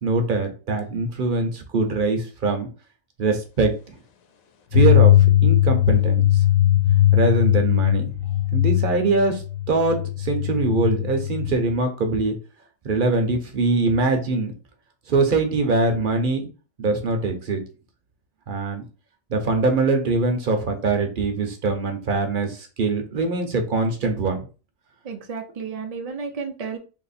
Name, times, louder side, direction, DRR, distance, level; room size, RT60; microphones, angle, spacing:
voice 1, 0.0-2.7 3.2-4.0 4.7-5.1 5.4-6.4 7.1-8.1 8.5-12.3 12.8-14.5 15.1-16.5 16.8-17.6 18.5-18.8 19.3-24.5, right 3 dB, 50° right, 5 dB, 0.7 m, -23 dB
sound 1, 4.7-11.5, left 13 dB, 85° left, 1.0 m, -19 dB
voice 2, 25.0-26.8, right 5 dB, 65° right, 3 dB, 0.3 m, -32 dB
2.9 x 2.7 x 4.1 m, 0.34 s
omnidirectional pair, 1.4 m